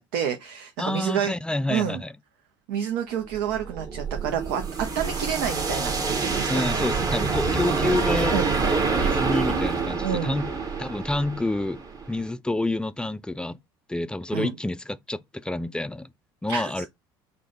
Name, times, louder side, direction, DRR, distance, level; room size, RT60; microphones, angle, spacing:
voice 1, 0.0-1.3 1.7-2.0 2.7-4.6 4.9-6.5 8.3-8.6 10.0-10.4 14.3-14.5 16.5-16.9, right 8 dB, 75° right, 0.7 m, -29 dB
voice 2, 0.8-2.1 6.5-8.4 8.9-10.5 10.8-11.8 12.1-13.6 13.9-16.1 16.4-16.9, left 2 dB, 5° left, 0.3 m, -28 dB
sound 1, 3.3-12.3, right 4 dB, 30° right, 1.0 m, -26 dB
4.8 x 2.2 x 3.8 m
hypercardioid pair, 75°, 12 cm